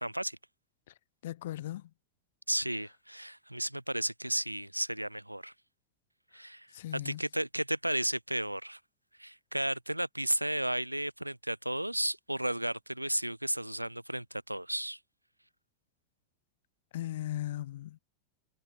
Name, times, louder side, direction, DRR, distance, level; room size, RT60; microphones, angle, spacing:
voice 1, 0.0-0.4 2.5-5.5 6.3-6.7 6.9-8.8 9.2-15.0, right 1 dB, 85° right, 0.5 m, -33 dB
voice 2, 1.2-1.9 6.7-7.2 16.9-18.0, left 13 dB, 55° left, 0.4 m, -37 dB
figure-of-eight pair, 90°, 0 cm